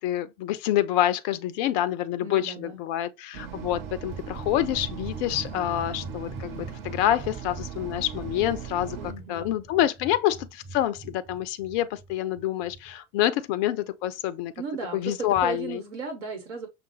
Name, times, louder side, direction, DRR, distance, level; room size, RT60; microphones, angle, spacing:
voice 1, 0.0-14.5 14.9-15.8, left 12 dB, 35° left, 0.4 m, -27 dB
voice 2, 2.2-2.8 9.0-9.5 14.6-16.7, right 4 dB, 60° right, 1.3 m, -35 dB
sound 1, 3.3-9.1, right 8 dB, 40° right, 0.8 m, -38 dB
sound 2, 4.1-12.9 15.3-15.7, right 2 dB, 25° right, 1.2 m, -43 dB
5.6 x 2.0 x 3.0 m
figure-of-eight pair, 80°, 42 cm